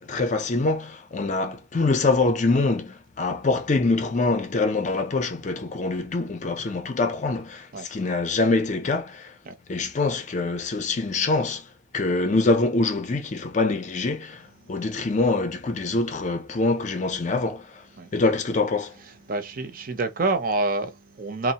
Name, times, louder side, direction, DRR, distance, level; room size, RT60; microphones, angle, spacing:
voice 1, 0.0-9.3 9.7-11.7 11.9-17.8 18.1-18.9, left 3 dB, 40° left, 0.4 m, -24 dB
voice 2, 19.3-21.5, right 2 dB, 50° right, 0.5 m, -27 dB
3.0 x 2.0 x 2.8 m
head